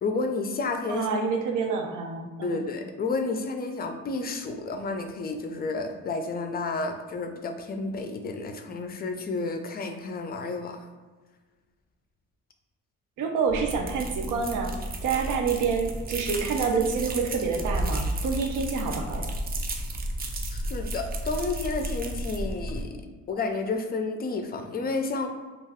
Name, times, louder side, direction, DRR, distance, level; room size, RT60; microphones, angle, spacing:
voice 1, 0.0-1.1 2.4-10.8 20.5-23.0 23.3-25.3, left 3 dB, 30° left, 6 dB, 0.4 m, -31 dB
voice 2, 0.9-2.6 13.2-14.7 15.0-19.3, right 5 dB, 80° right, 3 dB, 0.5 m, -28 dB
sound 1, 13.5-22.8, right 1 dB, 30° right, 0.4 m, -32 dB
2.4 x 2.2 x 3.4 m, 1.4 s
cardioid pair, 90°, 30 cm